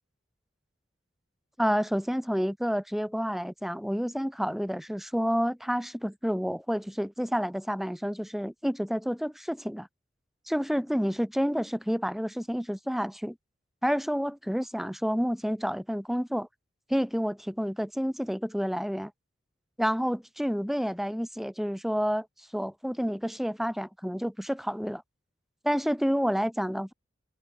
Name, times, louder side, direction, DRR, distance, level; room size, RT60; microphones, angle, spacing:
voice 1, 1.6-9.9 10.5-13.4 13.8-16.5 16.9-19.1 19.8-22.3 22.5-25.0 25.6-26.9, equal, ahead, 1.8 m, -29 dB
head